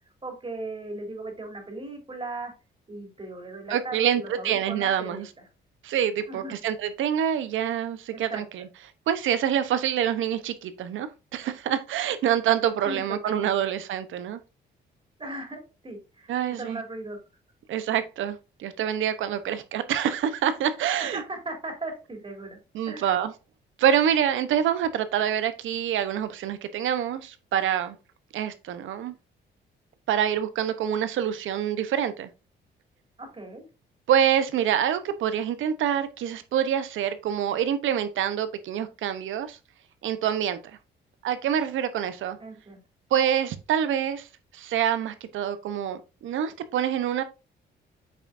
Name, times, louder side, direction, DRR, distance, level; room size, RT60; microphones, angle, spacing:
voice 1, 0.2-2.5 2.9-5.2 6.3-6.6 8.1-8.4 12.9-13.5 15.2-16.3 16.6-17.2 21.0-22.6 22.9-23.2 33.2-33.7 42.4-42.8, right 2 dB, 25° right, 3.6 m, -37 dB
voice 2, 3.7-5.3 5.8-8.7 9.1-14.4 16.3-16.8 17.7-21.2 22.7-23.3 23.8-28.0 28.3-29.1 30.1-32.3 34.1-39.6 40.0-40.6 41.2-42.4 43.1-44.3 44.5-47.2, right 9 dB, 80° right, 1.1 m, -26 dB
8.2 x 5.9 x 2.7 m
cardioid pair, 90°, 20 cm